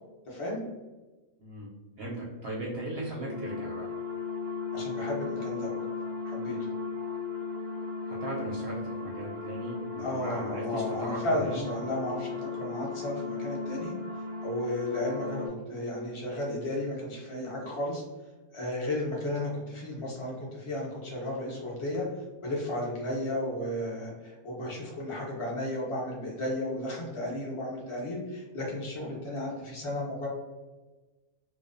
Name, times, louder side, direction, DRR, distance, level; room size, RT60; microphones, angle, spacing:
voice 1, 0.3-0.6 4.7-5.8 6.2-6.7 10.0-13.9 14.4-18.0 18.5-22.1 22.4-30.3, left 1 dB, 45° left, -3 dB, 0.4 m, -34 dB
voice 2, 2.0-3.9 8.1-11.7, right 1 dB, 65° right, -4 dB, 0.6 m, -38 dB
sound 1, 3.2-15.5, left 4 dB, 85° right, 1.0 m, -36 dB
2.5 x 2.0 x 2.5 m, 1.2 s
omnidirectional pair, 1.5 m